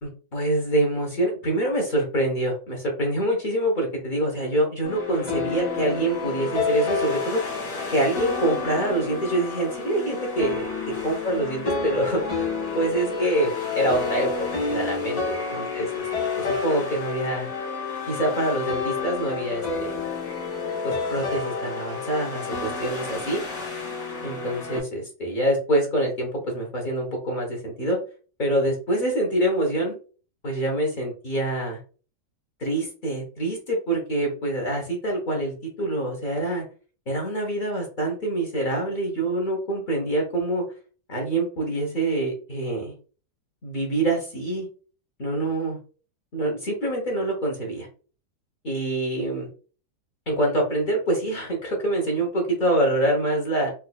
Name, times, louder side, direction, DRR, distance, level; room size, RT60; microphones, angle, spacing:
voice 1, 0.0-7.6 7.9-10.7 11.0-14.3 14.7-16.0 16.4-17.5 18.1-20.1 20.8-23.4 24.2-28.0 28.4-30.0 30.4-31.8 32.6-36.7 37.1-40.6 41.1-42.9 43.6-44.7 45.2-45.8 46.3-47.9 48.6-49.5 50.3-53.7, right 1 dB, 35° left, 0 dB, 0.9 m, -25 dB
sound 1, 4.8-24.8, left 4 dB, 75° left, 2.0 m, -29 dB
4.2 x 2.7 x 2.3 m, 0.38 s
omnidirectional pair, 1.8 m